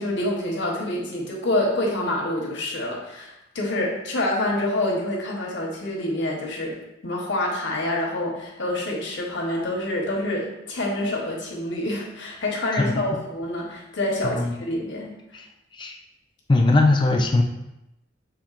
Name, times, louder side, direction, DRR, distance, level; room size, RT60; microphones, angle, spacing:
voice 1, 0.0-6.8 7.0-15.1, left 1 dB, 80° left, -2 dB, 1.1 m, -27 dB
voice 2, 14.2-14.5 15.3-15.5 15.7-16.0 16.5-17.4, left 2 dB, 25° left, 3 dB, 0.4 m, -20 dB
5.8 x 3.5 x 2.5 m, 0.92 s
head